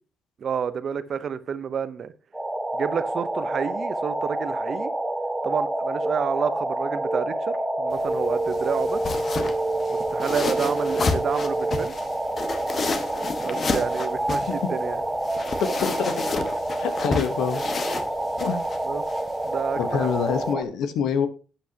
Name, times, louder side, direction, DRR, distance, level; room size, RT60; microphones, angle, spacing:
voice 1, 0.4-2.1 2.7-4.9 5.4-9.0 9.9-11.9 13.4-15.0 18.9-19.0 19.4-20.2, right 7 dB, 55° right, 0.8 m, -29 dB
sound 1, 2.3-20.6, right 1 dB, 10° right, 1.2 m, -28 dB
sound 2, 7.9-20.5, left 4 dB, 45° left, 1.3 m, -32 dB
voice 2, 15.6-16.1 16.8-17.6 18.4-18.6 19.8-21.3, left 7 dB, 85° left, 1.2 m, -26 dB
12.0 x 8.1 x 2.9 m
cardioid pair, 90°, 0 cm